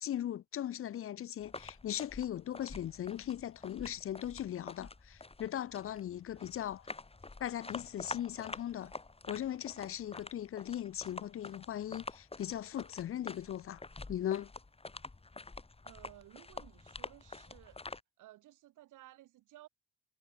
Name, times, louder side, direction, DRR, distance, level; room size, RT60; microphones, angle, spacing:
voice 1, 0.0-6.9 7.4-8.9 9.3-13.8 14.1-14.5, left 11 dB, 45° left, 0.5 m, -38 dB
sound 1, 1.4-18.0, left 3 dB, 20° left, 3.3 m, -48 dB
voice 2, 15.8-17.8 18.2-19.7, right 15 dB, 90° right, 5.9 m, -56 dB
cardioid pair, 90°, 30 cm